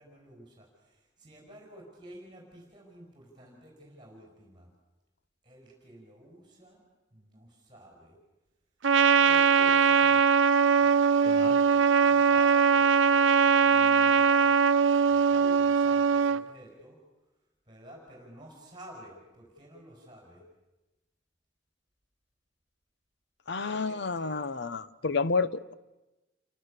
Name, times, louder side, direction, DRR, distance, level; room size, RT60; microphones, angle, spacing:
voice 1, 0.0-4.7 5.4-6.8 7.1-8.2 9.2-10.1 10.7-14.5 15.1-17.0 17.7-20.4 23.6-24.4, right 1 dB, 25° right, 0 dB, 5.7 m, -51 dB
Trumpet, 8.8-16.4, right 6 dB, 85° right, 0.8 m, -21 dB
voice 2, 11.2-11.6 23.5-25.7, left 4 dB, 65° left, 14 dB, 0.9 m, -30 dB
29.0 x 24.0 x 6.7 m, 1.1 s
head